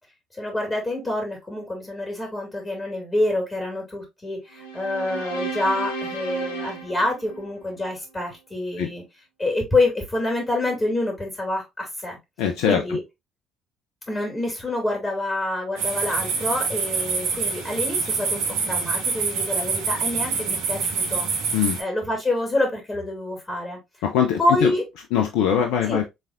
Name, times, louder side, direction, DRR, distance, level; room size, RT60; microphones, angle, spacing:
voice 1, 0.3-9.0 9.4-12.2 12.7-13.0 14.1-23.8 24.4-24.8 25.9-26.0, left 2 dB, 25° left, 2.5 m, -27 dB
sound 1, 4.5-7.9, right 2 dB, 85° left, 1.0 m, -33 dB
voice 2, 12.4-13.0 21.5-21.8 24.0-24.7 25.1-26.0, left 9 dB, 70° left, 0.6 m, -22 dB
sound 2, 15.8-21.8, right 5 dB, 75° right, 1.3 m, -26 dB
5.6 x 3.4 x 2.5 m
hypercardioid pair, 55°, 0 cm